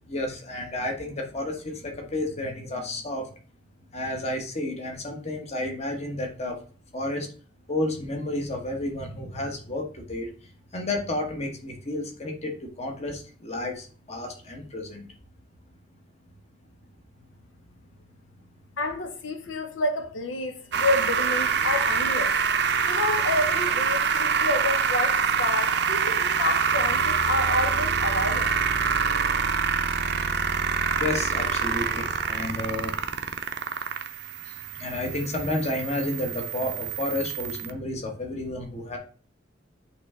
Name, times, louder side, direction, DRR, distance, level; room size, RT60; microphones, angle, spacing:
voice 1, 0.1-3.3 3.9-6.6 6.9-7.3 7.7-10.3 10.7-15.1 31.0-32.9 34.7-39.0, left 1 dB, 35° left, 1.2 m, -31 dB
voice 2, 18.8-22.4 22.9-28.6, left 2 dB, 85° left, 0.7 m, -29 dB
sound 1, 20.7-37.7, right 6 dB, 60° right, 0.6 m, -26 dB
8.2 x 3.3 x 3.6 m
head